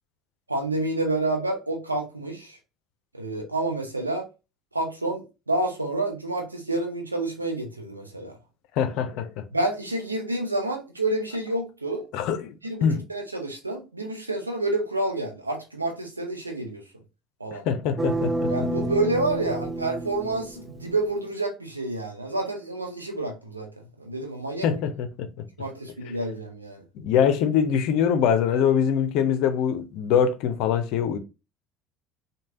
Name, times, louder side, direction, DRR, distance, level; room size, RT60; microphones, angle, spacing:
voice 1, 0.5-2.6 3.1-4.3 4.7-8.3 9.5-12.1 12.6-16.8 17.4-17.6 18.5-23.7 24.0-24.7 25.6-26.8, right 2 dB, 85° right, 0.7 m, -29 dB
voice 2, 8.8-9.4 12.1-13.0 17.5-18.5 24.6-25.3 26.9-31.2, left 8 dB, 55° left, 0.5 m, -23 dB
sound 1, 18.0-21.0, right 1 dB, 20° right, 0.4 m, -29 dB
3.2 x 2.3 x 3.5 m
figure-of-eight pair, 60°, 0 cm